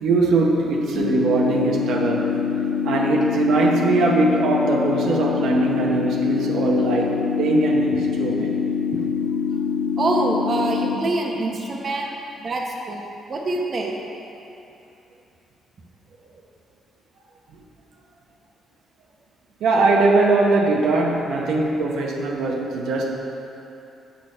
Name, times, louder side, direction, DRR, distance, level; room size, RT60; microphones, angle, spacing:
voice 1, 0.0-2.3 2.8-8.5 19.6-23.1, right 2 dB, 80° right, -1 dB, 0.9 m, -21 dB
sound 1, 0.9-11.0, left 6 dB, 90° left, 0.9 m, -24 dB
voice 2, 10.0-12.1 12.4-14.0, right 2 dB, 45° right, 0 dB, 0.9 m, -25 dB
6.7 x 5.7 x 5.4 m, 2.8 s
cardioid pair, 90°, 0 cm